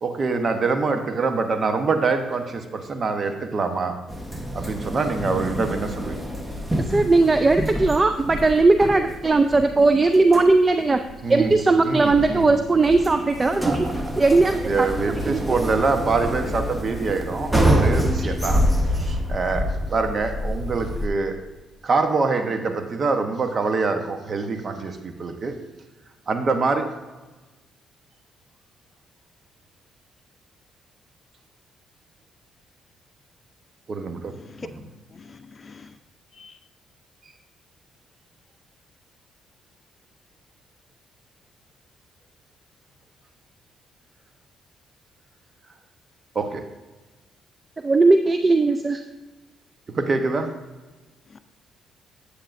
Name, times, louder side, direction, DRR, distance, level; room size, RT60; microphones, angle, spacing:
voice 1, 0.0-4.0 4.5-6.2 11.2-11.5 11.8-12.4 13.6-13.8 14.6-21.4 21.8-25.5 26.3-26.9 33.9-34.3 34.6-34.7 46.3-46.6 49.9-50.5, right 4 dB, 40° right, 6 dB, 1.0 m, -25 dB
sound 1, 4.1-21.1, equal, 10° right, 1.1 m, -26 dB
voice 2, 6.9-11.0 11.3-13.9 14.2-14.9 15.3-15.6 47.8-49.0, right 3 dB, 25° right, 8 dB, 0.4 m, -18 dB
voice 3, 34.3-34.7 35.1-36.0 36.3-36.6 51.3-51.4, left 5 dB, 35° left, 10 dB, 0.5 m, -44 dB
9.8 x 8.4 x 2.6 m, 1.2 s
cardioid pair, 90°, 0 cm